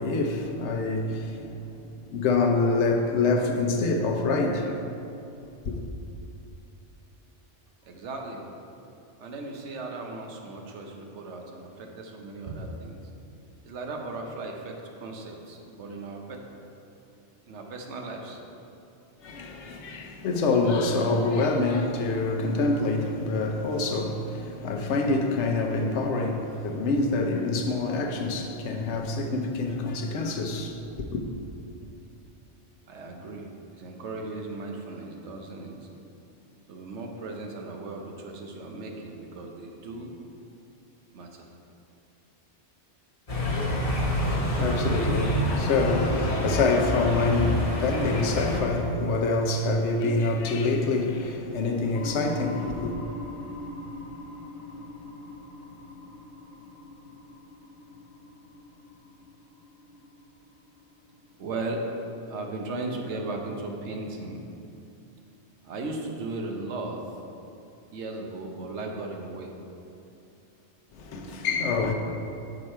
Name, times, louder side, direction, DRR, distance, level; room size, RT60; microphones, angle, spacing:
voice 1, 0.0-1.7 2.0-4.8 5.7-5.8 19.2-31.2 43.9-52.9 70.9-71.9, left 3 dB, 85° left, 1.0 m, -26 dB
voice 2, 7.8-8.4 9.2-13.1 13.6-16.2 17.5-18.4 32.9-35.8 36.7-40.1 41.1-41.5 61.4-61.8 62.3-64.4 65.6-67.0 67.9-69.5, right 2 dB, 80° right, 1.1 m, -36 dB
sound 1, 43.3-48.6, equal, 35° left, 1.1 m, -27 dB
sound 2, 51.9-61.5, left 3 dB, 70° left, 1.2 m, -42 dB
6.6 x 4.8 x 4.4 m
omnidirectional pair, 1.2 m